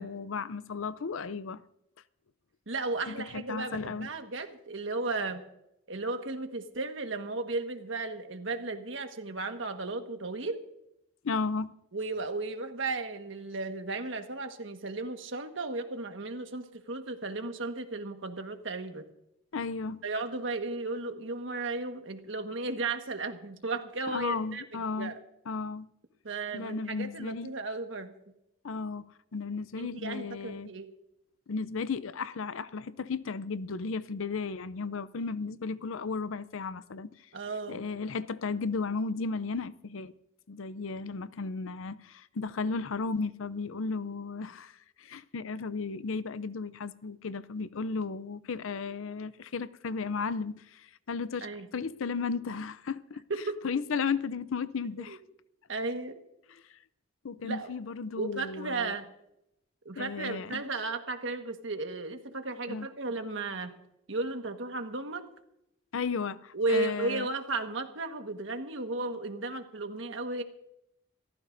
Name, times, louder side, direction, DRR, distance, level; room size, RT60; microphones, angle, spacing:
voice 1, 0.0-1.6 3.1-4.1 11.2-11.7 19.5-20.0 24.1-25.1 25.5-25.9 26.5-27.5 28.6-29.0 29.3-30.7 31.5-37.1 37.7-40.1 40.5-53.2 53.6-55.2 56.5-56.6 57.2-59.0 60.0-60.6 62.7-62.9 65.9-67.3, left 4 dB, 80° left, 0.6 m, -34 dB
voice 2, 2.7-5.4 5.9-10.6 11.9-19.0 20.0-25.2 26.2-28.1 29.8-30.9 37.3-37.8 51.4-51.7 53.3-53.6 55.1-55.2 55.7-56.2 57.4-57.7 58.2-59.1 59.8-63.7 64.1-65.2 66.5-70.4, right 3 dB, 70° right, 1.5 m, -35 dB
27.5 x 14.5 x 2.6 m
head